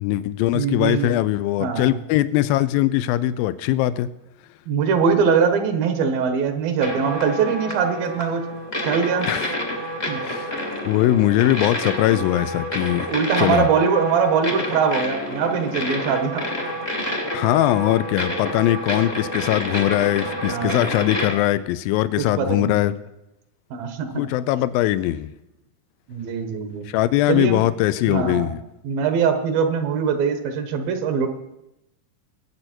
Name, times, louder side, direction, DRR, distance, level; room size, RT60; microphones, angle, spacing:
voice 1, 0.0-4.1 9.3-9.5 10.2-10.5 10.9-13.1 13.4-13.7 17.3-23.0 24.1-25.3 26.9-28.6, left 14 dB, 85° left, 15 dB, 2.4 m, -21 dB
voice 2, 0.5-1.1 1.6-2.0 4.7-8.4 8.8-9.3 10.1-10.2 13.1-16.4 20.5-20.9 22.4-22.8 23.7-24.1 26.1-26.9 27.3-27.7 28.1-28.5 28.8-31.3, right 6 dB, 80° right, 7 dB, 2.9 m, -22 dB
sound 1, 6.8-21.3, equal, 35° left, 0.7 m, -29 dB
21.0 x 7.9 x 4.4 m, 0.91 s
omnidirectional pair, 4.1 m